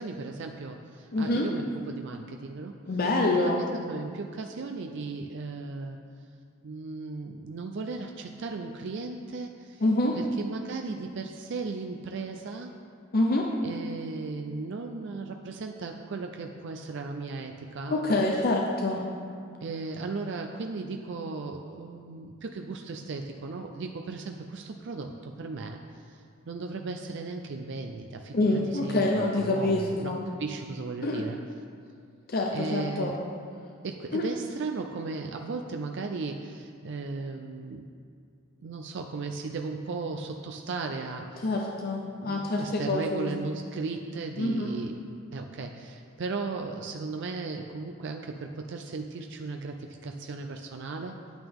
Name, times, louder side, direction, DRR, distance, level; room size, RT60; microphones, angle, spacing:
voice 1, 0.0-2.8 3.3-6.0 6.6-9.8 10.2-12.7 13.6-18.3 19.6-26.2 26.5-30.1 30.4-31.4 32.5-33.2 33.8-37.9 38.6-41.5 42.2-45.0 45.3-51.2, right 3 dB, 55° right, 4 dB, 0.4 m, -36 dB
voice 2, 1.1-1.5 2.9-3.6 9.8-10.2 13.1-13.5 17.9-19.0 28.3-30.2 31.0-31.2 32.3-33.1 34.1-34.2 41.4-43.3 44.4-44.7, left 2 dB, 45° left, 0 dB, 0.6 m, -26 dB
9.0 x 8.9 x 3.6 m, 2.3 s
head